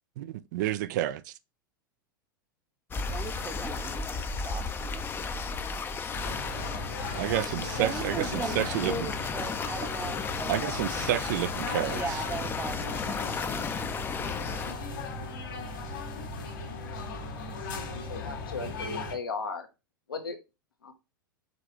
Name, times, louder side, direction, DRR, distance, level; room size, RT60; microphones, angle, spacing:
voice 1, 0.2-1.3 7.1-8.9 10.5-12.0, right 13 dB, 60° right, 0.4 m, -30 dB
sound 1, 2.9-14.7, left 5 dB, 20° left, 0.5 m, -34 dB
voice 2, 3.1-5.9 6.4-7.1 7.3-7.5 7.8-11.2 11.9-13.8, right 4 dB, 20° right, 0.7 m, -39 dB
sound 2, 6.1-19.1, left 3 dB, 65° left, 1.7 m, -37 dB
voice 3, 18.1-19.7 20.1-20.4 20.8-20.9, left 4 dB, 85° left, 1.0 m, -36 dB
5.1 x 3.2 x 3.0 m
hypercardioid pair, 90°, 11 cm